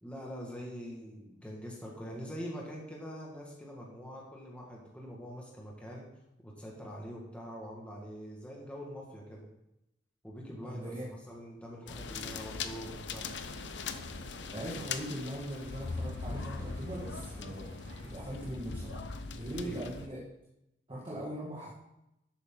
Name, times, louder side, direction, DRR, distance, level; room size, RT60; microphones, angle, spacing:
voice 1, 0.0-6.1 6.4-9.5 10.2-13.3 19.4-19.9, equal, 5° left, -3 dB, 1.9 m, -44 dB
voice 2, 10.6-11.1 14.5-17.7 18.0-20.2 20.9-21.7, right 1 dB, 30° right, -5 dB, 1.9 m, -40 dB
sound 1, 11.9-20.1, left 4 dB, 70° left, 0.7 m, -40 dB
sound 2, 13.1-18.1, right 1 dB, 60° right, 2.1 m, -55 dB
12.0 x 8.4 x 3.9 m, 0.87 s
head